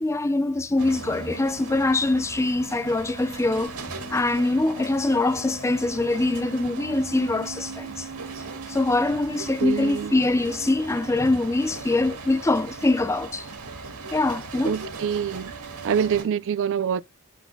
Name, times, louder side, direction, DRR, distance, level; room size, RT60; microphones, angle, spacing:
voice 1, 0.0-3.7 4.1-8.1 8.7-13.5 14.1-14.8, left 2 dB, 15° left, 0.4 m, -23 dB
sound 1, 0.8-16.2, right 3 dB, 90° right, 1.8 m, -38 dB
voice 2, 9.6-10.1 14.6-15.5 15.8-17.0, right 8 dB, 60° right, 0.4 m, -25 dB
11.5 x 4.0 x 2.3 m
head